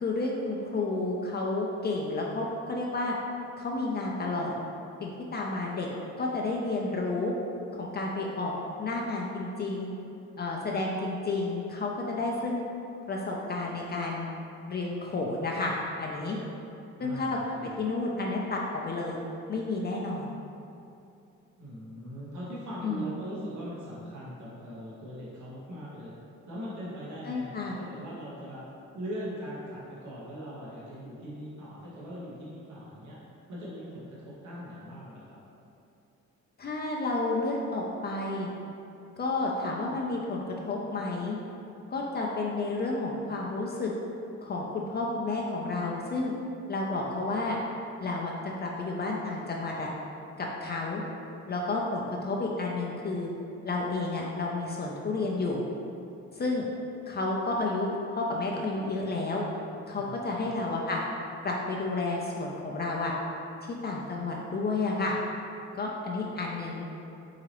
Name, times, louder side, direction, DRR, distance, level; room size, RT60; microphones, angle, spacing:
voice 1, 0.0-3.1 3.6-4.6 5.0-5.9 6.2-7.3 7.8-8.5 8.8-9.9 10.4-12.6 13.1-14.3 14.7-16.4 17.0-17.4 17.8-19.2 19.5-20.3 22.8-23.0 27.3-27.8 36.6-38.5 39.2-41.4 41.9-43.9 44.4-46.3 46.7-47.6 48.0-48.3 48.6-49.9 50.4-51.0 51.5-53.3 53.6-55.6 56.3-56.7 57.1-59.4 59.9-61.0 61.4-63.1 63.8-65.2 65.7-66.8, left 3 dB, 35° left, -2 dB, 0.4 m, -31 dB
voice 2, 17.0-17.7 21.6-26.1 26.5-28.6 28.9-33.2 33.5-35.4 59.9-60.6, equal, 70° right, -8 dB, 1.2 m, -40 dB
4.8 x 2.9 x 2.9 m, 2.6 s
cardioid pair, 90°, 30 cm